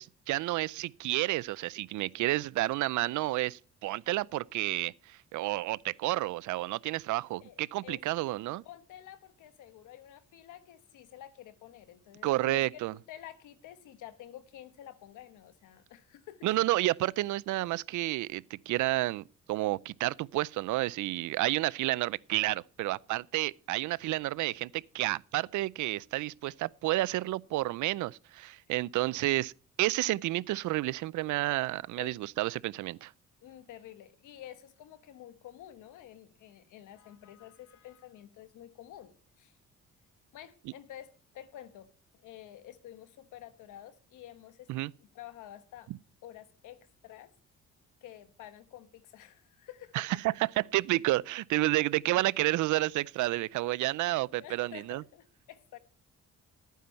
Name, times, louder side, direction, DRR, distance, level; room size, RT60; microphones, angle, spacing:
voice 1, 0.0-8.6 12.2-12.9 16.4-29.5 29.8-33.1 44.7-44.9 49.9-55.0, right 17 dB, 75° right, 0.5 m, -30 dB
voice 2, 7.4-8.0 8.6-12.8 13.1-16.5 32.0-32.2 33.4-39.6 40.3-41.9 42.2-44.7 45.1-45.9 46.2-47.3 48.0-50.2 54.4-55.8, left 12 dB, 85° left, 1.3 m, -50 dB
12.0 x 9.2 x 4.3 m
cardioid pair, 90°, 30 cm